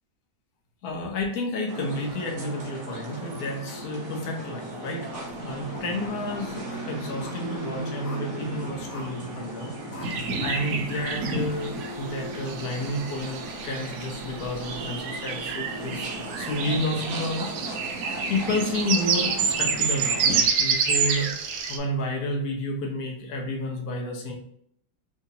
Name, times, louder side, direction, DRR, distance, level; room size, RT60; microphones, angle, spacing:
voice 1, 0.8-5.1 5.4-9.7 10.0-16.1 16.4-17.5 17.8-17.9 18.3-21.3 21.7-24.3, left 1 dB, 60° left, 0 dB, 1.2 m, -31 dB
sound 1, 1.7-20.4, right 1 dB, 50° right, 1.2 m, -36 dB
sound 2, 5.1-6.8 7.2-7.4 8.0-8.3 8.9-9.1 9.9-10.1, left 2 dB, 75° left, 1.5 m, -44 dB
sound 3, 10.0-21.8, right 6 dB, 75° right, 1.0 m, -28 dB
4.8 x 2.8 x 2.7 m, 0.68 s
omnidirectional pair, 2.0 m